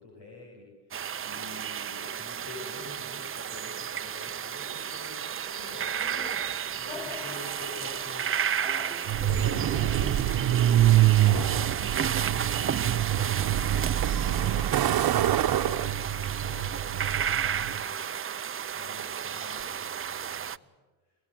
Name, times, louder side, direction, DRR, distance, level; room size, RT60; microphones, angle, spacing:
voice 1, 0.0-10.3 10.6-20.7, left 2 dB, 90° left, -1 dB, 6.5 m, -47 dB
sound 1, 0.9-20.6, right 8 dB, 30° right, 0.7 m, -33 dB
sound 2, 5.5-11.1, left 1 dB, 10° left, 2.1 m, -45 dB
Truck, 9.1-17.8, right 12 dB, 60° right, 1.1 m, -25 dB
23.0 x 22.0 x 7.8 m, 1.3 s
supercardioid pair, 75°, 40 cm